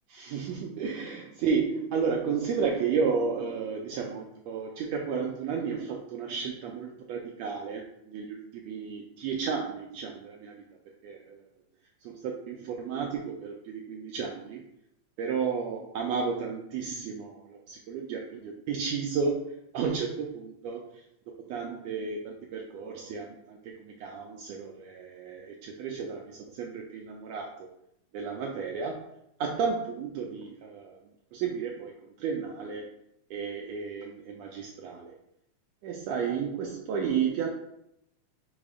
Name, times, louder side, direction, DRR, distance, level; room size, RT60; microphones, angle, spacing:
voice 1, 0.1-10.5 11.0-11.4 12.0-14.6 15.2-21.0 21.4-27.7 28.1-29.0 29.4-31.0 31.3-32.9 33.3-35.1 35.8-37.5, right 6 dB, 80° right, 0 dB, 1.5 m, -32 dB
5.1 x 2.0 x 4.8 m, 0.79 s
omnidirectional pair, 3.4 m